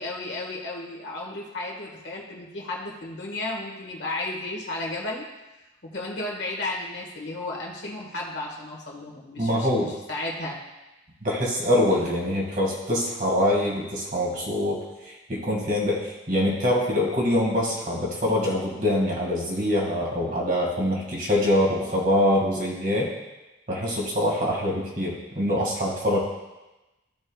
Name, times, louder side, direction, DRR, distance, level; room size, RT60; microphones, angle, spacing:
voice 1, 0.0-5.2 5.8-9.7 10.1-10.6, left 2 dB, 60° left, -2 dB, 1.6 m, -33 dB
voice 2, 9.4-9.9 11.2-14.8 15.3-23.1 23.7-26.2, left 1 dB, 45° right, -3 dB, 2.0 m, -24 dB
14.5 x 5.5 x 2.4 m, 1.0 s
head